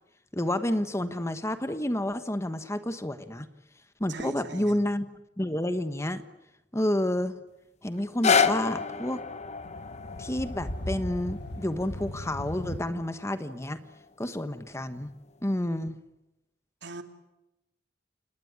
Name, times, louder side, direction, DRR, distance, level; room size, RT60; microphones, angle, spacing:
voice 1, 0.3-3.5 4.0-5.1 5.4-6.2 6.7-7.4 7.8-9.2 10.2-13.8 14.2-15.1 15.4-16.0, left 1 dB, 15° left, 10 dB, 1.2 m, -29 dB
voice 2, 4.1-4.8 16.8-17.0, right 3 dB, 75° right, 6 dB, 2.8 m, -40 dB
sound 1, 8.0-14.1 14.7-14.8, left 5 dB, 40° left, 1.2 m, -30 dB
sound 2, 9.2-12.8, left 1 dB, 75° left, 2.0 m, -38 dB
29.0 x 19.5 x 9.6 m, 0.95 s
head